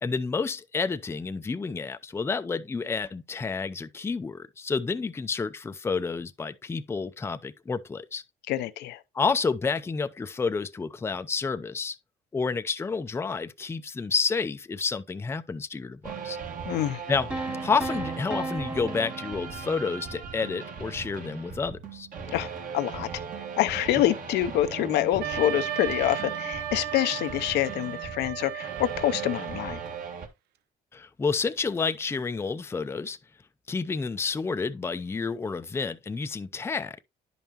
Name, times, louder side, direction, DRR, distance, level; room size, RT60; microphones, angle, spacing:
voice 1, 0.0-8.2 9.1-12.0 12.3-16.4 17.1-17.3 17.6-22.1 30.9-33.2 33.7-37.0, left 4 dB, 15° left, 0.5 m, -30 dB
voice 2, 8.5-9.0 16.7-17.0 22.3-23.1 23.6-29.8, left 13 dB, 80° left, 0.6 m, -26 dB
sound 1, 16.0-30.3, right 6 dB, 55° right, 1.7 m, -38 dB
sound 2, 17.3-20.2, right 2 dB, 5° right, 0.9 m, -35 dB
Wind instrument woodwind instrument, 25.2-30.1, right 12 dB, 75° right, 0.6 m, -35 dB
10.5 x 5.4 x 2.9 m
cardioid pair, 110°, 17 cm